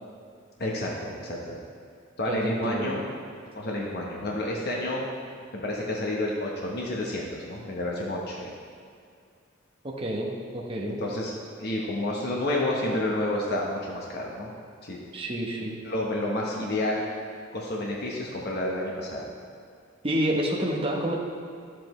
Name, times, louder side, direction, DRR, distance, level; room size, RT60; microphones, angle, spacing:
voice 1, 0.6-1.6 2.2-3.0 3.5-5.0 5.5-8.5 10.8-11.3 11.6-14.5 14.8-15.0 15.8-17.0 17.5-19.2, left 1 dB, 50° left, -2 dB, 1.0 m, -30 dB
voice 2, 2.3-3.0 9.8-11.0 15.1-15.8 20.0-21.1, right 1 dB, 25° right, -2 dB, 1.0 m, -29 dB
11.0 x 7.8 x 3.2 m, 2.3 s
head